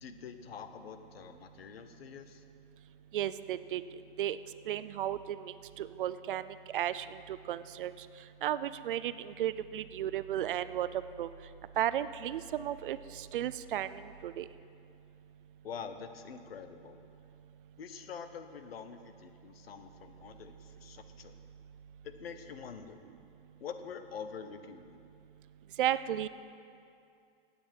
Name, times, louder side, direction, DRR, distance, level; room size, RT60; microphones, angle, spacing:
voice 1, 0.0-2.4 15.6-17.0 17.8-21.4 22.0-23.0 23.6-25.0, left 7 dB, 90° left, 9 dB, 1.0 m, -46 dB
voice 2, 3.1-3.8 4.2-4.4 4.7-6.5 6.7-7.0 7.5-7.9 8.4-10.9 11.2-11.3 11.8-13.0 13.3-13.9 14.2-14.4 25.8-26.3, right 11 dB, 60° right, 14 dB, 0.5 m, -33 dB
15.5 x 8.6 x 4.5 m, 2.4 s
hypercardioid pair, 165°, 29 cm